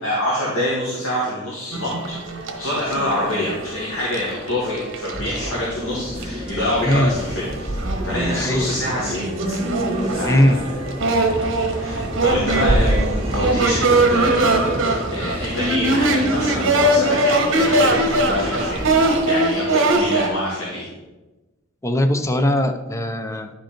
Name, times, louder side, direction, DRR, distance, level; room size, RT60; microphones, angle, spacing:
voice 1, 0.0-7.7 8.0-9.6 10.0-10.7 11.8-18.8 19.3-20.9, left 1 dB, 75° left, -6 dB, 1.9 m, -26 dB
sound 1, 1.7-5.6 6.2-6.3 6.6-20.3, right 2 dB, 65° right, 1.2 m, -22 dB
sound 2, 5.1-17.0, right 1 dB, 5° right, 2.3 m, -29 dB
sound 3, 5.3-19.3, equal, 25° right, 1.8 m, -31 dB
voice 2, 6.8-7.2 8.3-8.7 10.3-10.6 21.8-23.5, left 1 dB, 15° left, 7 dB, 0.6 m, -19 dB
9.9 x 5.4 x 4.4 m, 1.1 s
head